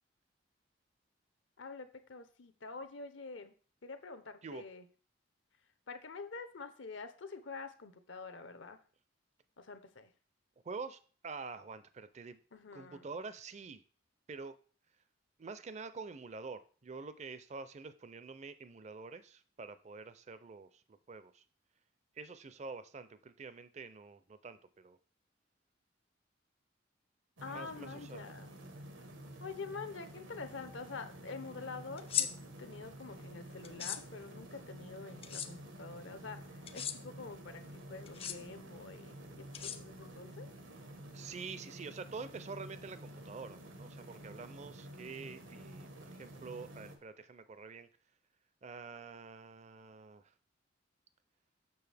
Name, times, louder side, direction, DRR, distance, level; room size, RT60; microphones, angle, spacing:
voice 1, 1.6-3.5 3.8-4.8 5.9-8.8 9.6-10.1 12.5-13.1 27.4-28.6 29.4-32.3 32.6-40.5, left 4 dB, 75° left, 9 dB, 0.8 m, -47 dB
voice 2, 10.6-12.4 12.7-13.8 14.3-14.5 15.4-21.4 22.2-25.0 27.5-28.3 41.1-47.9 48.6-50.2, right 4 dB, 35° right, 13 dB, 0.5 m, -47 dB
sound 1, 27.4-47.0, right 1 dB, 85° right, 1.2 m, -50 dB
sound 2, 32.0-32.3 33.6-34.0 35.2-35.5 36.7-37.0 38.1-38.4 39.5-40.1, left 10 dB, 30° left, 0.5 m, -36 dB
6.9 x 6.2 x 3.4 m, 0.41 s
head